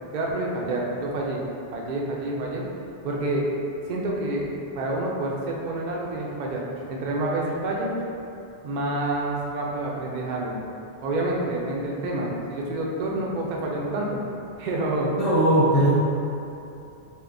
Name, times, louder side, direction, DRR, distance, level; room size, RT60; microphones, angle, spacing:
voice 1, 0.1-1.4 1.7-2.6 3.0-3.5 3.8-4.5 4.7-7.9 8.6-10.6 11.0-14.2 14.6-15.1, right 2 dB, 55° right, -2 dB, 0.6 m, -28 dB
voice 2, 15.0-15.9, right 1 dB, 40° left, -10 dB, 0.6 m, -19 dB
4.4 x 2.8 x 2.6 m, 2.7 s
omnidirectional pair, 1.1 m